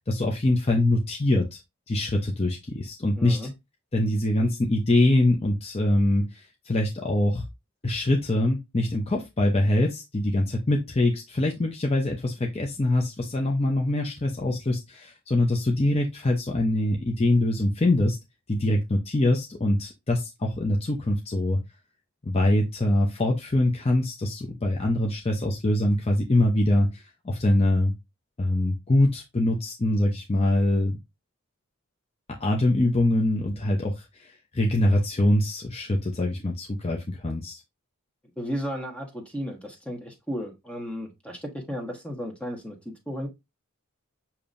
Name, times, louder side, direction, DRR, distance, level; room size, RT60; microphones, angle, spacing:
voice 1, 0.0-1.6 1.9-3.4 3.9-7.4 7.8-18.2 18.5-21.6 22.2-27.9 28.4-31.0 32.4-34.0 34.5-37.6, left 1 dB, 30° left, 1 dB, 0.6 m, -24 dB
voice 2, 3.2-3.5 38.4-42.8 43.1-43.3, equal, 5° left, 1 dB, 1.2 m, -34 dB
6.9 x 2.9 x 2.5 m, 0.22 s
head